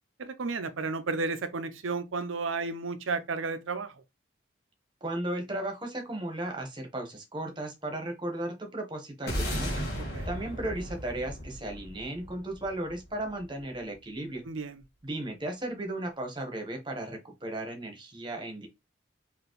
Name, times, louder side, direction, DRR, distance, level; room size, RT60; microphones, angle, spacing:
voice 1, 0.2-3.9 9.9-10.3 14.5-14.8, right 4 dB, 90° right, 0.6 m, -33 dB
voice 2, 5.0-9.8 10.3-14.4 15.0-18.7, right 1 dB, 25° right, 1.2 m, -35 dB
sound 1, 9.3-13.7, equal, 55° left, 1.5 m, -35 dB
5.0 x 2.7 x 3.1 m
head